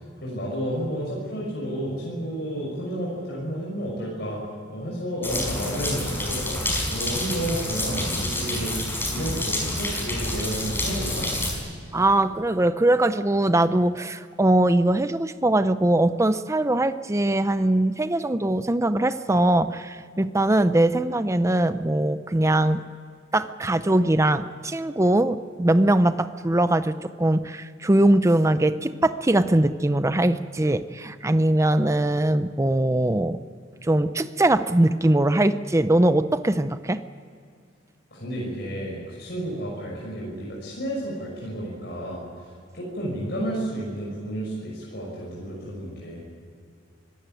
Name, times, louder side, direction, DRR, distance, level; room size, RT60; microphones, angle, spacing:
voice 1, 0.2-4.4 4.7-6.6 6.9-8.7 9.1-11.3 38.1-42.2 42.7-46.3, right 1 dB, 60° left, -4 dB, 6.2 m, -31 dB
sound 1, 5.2-11.5, left 1 dB, 10° left, 5.3 m, -28 dB
voice 2, 11.9-22.8 23.3-33.4 33.8-37.0, right 1 dB, 15° right, 11 dB, 0.6 m, -21 dB
25.0 x 16.0 x 9.2 m, 2.2 s
head